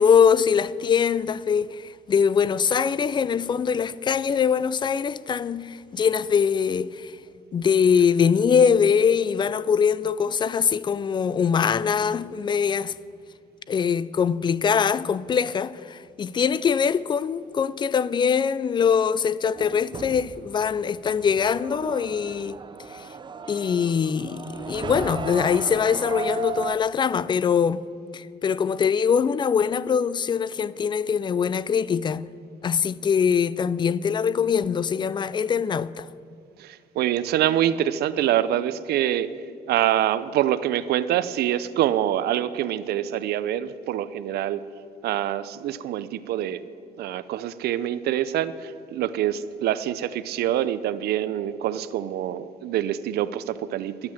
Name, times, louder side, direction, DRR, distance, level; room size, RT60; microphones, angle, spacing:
voice 1, 0.0-7.2 7.5-12.9 13.7-22.6 22.9-23.1 23.5-27.9 28.1-32.3 32.6-36.1, left 7 dB, 30° left, 0.3 m, -23 dB
sound 1, 19.6-26.8, right 5 dB, 25° right, 0.6 m, -36 dB
voice 2, 36.6-39.3 39.7-44.6 45.0-46.6 47.0-54.1, right 12 dB, 70° right, 0.6 m, -25 dB
12.5 x 8.7 x 7.3 m
cardioid pair, 110°, 17 cm